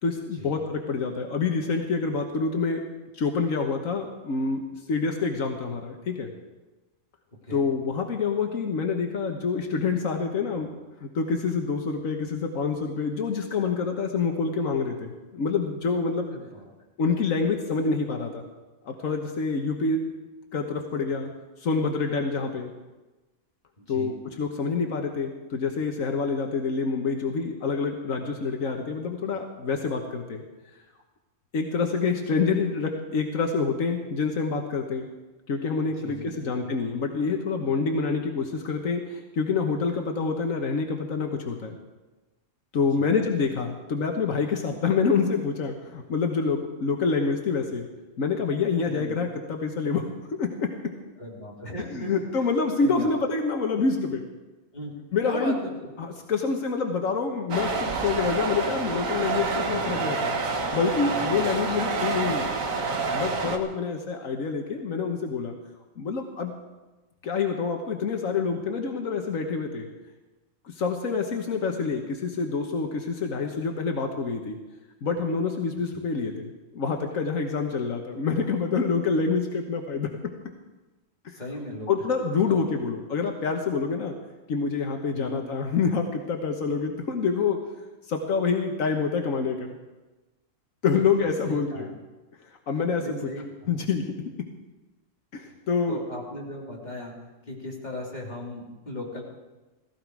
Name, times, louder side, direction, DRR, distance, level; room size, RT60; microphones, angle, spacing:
voice 1, 0.0-2.8 3.1-6.3 7.5-10.7 11.0-16.3 17.0-18.4 18.8-20.1 20.5-21.3 21.6-22.7 23.9-30.4 31.5-35.1 35.5-41.8 42.7-47.9 48.2-50.7 51.9-54.3 55.1-55.6 56.0-60.4 60.7-62.6 63.1-65.5 66.0-66.6 67.2-69.9 70.6-74.6 75.0-80.1 81.9-84.2 84.5-87.6 88.1-89.8 90.8-91.9 92.7-93.0 93.7-94.1 95.3-96.0, left 5 dB, 80° left, 3 dB, 1.6 m, -27 dB
voice 2, 16.3-16.7 23.8-24.1 36.0-36.7 43.0-43.1 48.9-49.2 51.2-52.5 52.8-53.1 54.7-55.0 55.2-55.9 61.7-61.9 75.9-76.1 81.3-81.9 82.5-82.7 85.1-85.4 91.0-91.9 93.0-93.7 95.9-99.2, left 1 dB, 35° left, -3 dB, 3.5 m, -38 dB
sound 1, 57.5-63.6, right 4 dB, 85° right, 1.7 m, -28 dB
16.0 x 16.0 x 4.7 m, 1.1 s
omnidirectional pair, 1.4 m